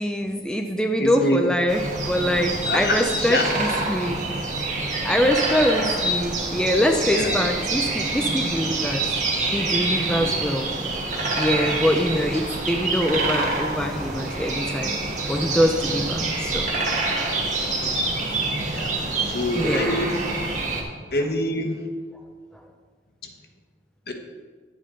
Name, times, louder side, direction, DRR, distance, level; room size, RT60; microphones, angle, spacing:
voice 1, 0.0-4.3 5.0-9.1 9.5-10.7 11.4-16.7 19.5-19.9, equal, 5° left, 3 dB, 0.5 m, -24 dB
voice 2, 1.0-1.4 2.7-3.5 5.1-5.3 7.1-7.5 10.1-10.4 17.8-18.4 18.7-18.9 19.3-20.2 21.1-21.9 24.1-24.2, left 1 dB, 60° left, 4 dB, 1.1 m, -26 dB
sound 1, 1.7-20.8, right 2 dB, 45° right, 1.5 m, -26 dB
11.0 x 7.6 x 3.8 m, 1.5 s
head